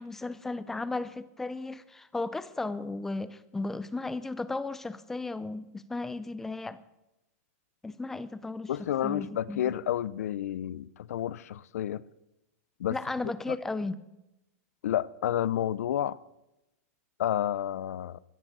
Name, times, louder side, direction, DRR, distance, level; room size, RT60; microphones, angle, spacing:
voice 1, 0.0-6.8 7.8-9.7 12.9-14.0, left 3 dB, 5° left, 15 dB, 0.4 m, -35 dB
voice 2, 8.7-12.0 12.8-13.0 13.5-13.6 14.8-16.2 17.2-18.2, left 11 dB, 85° left, 20 dB, 0.5 m, -30 dB
15.0 x 10.5 x 6.1 m, 0.93 s
supercardioid pair, 175°, 8 cm